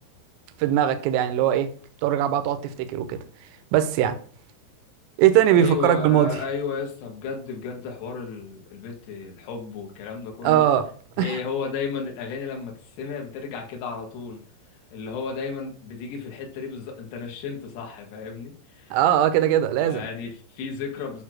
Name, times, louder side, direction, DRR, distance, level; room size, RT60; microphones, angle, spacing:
voice 1, 0.6-1.7 2.0-3.2 3.7-4.2 5.2-6.3 10.4-10.9 11.2-11.4 18.9-20.1, right 11 dB, 80° right, 2.9 m, -20 dB
voice 2, 5.5-10.7 11.2-14.4 14.9-19.0 19.8-21.2, left 5 dB, 65° left, 3.5 m, -33 dB
9.7 x 3.2 x 6.1 m
omnidirectional pair, 5.7 m